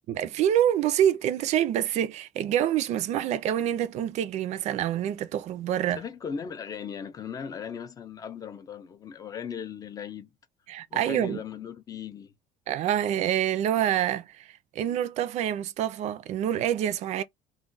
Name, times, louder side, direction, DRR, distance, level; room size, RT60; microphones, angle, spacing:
voice 1, 0.1-6.0 10.7-11.4 12.7-17.2, right 10 dB, 50° right, 0.4 m, -26 dB
voice 2, 5.9-10.3 10.9-12.3, left 7 dB, 25° left, 0.4 m, -38 dB
2.3 x 2.1 x 3.8 m
cardioid pair, 160°, 15 cm